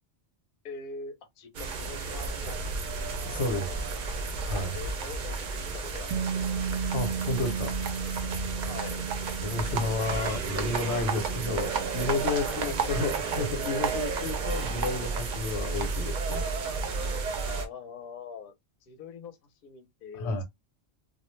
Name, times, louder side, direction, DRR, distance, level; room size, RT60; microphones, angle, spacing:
voice 1, 0.6-2.6 4.4-6.6 8.7-9.0 10.0-10.2 11.1-11.3 12.3-13.0 17.5-18.5 18.8-20.4, left 5 dB, 60° left, 0.8 m, -44 dB
sound 1, 1.5-17.7, right 4 dB, 55° right, 0.5 m, -32 dB
voice 2, 3.2-3.8 4.4-4.8 6.9-7.8 8.1-8.2 9.4-16.4 20.2-20.4, left 3 dB, 90° left, 1.0 m, -31 dB
Bass guitar, 6.1-12.4, right 6 dB, 90° right, 0.9 m, -35 dB
2.3 x 2.1 x 3.0 m
omnidirectional pair, 1.1 m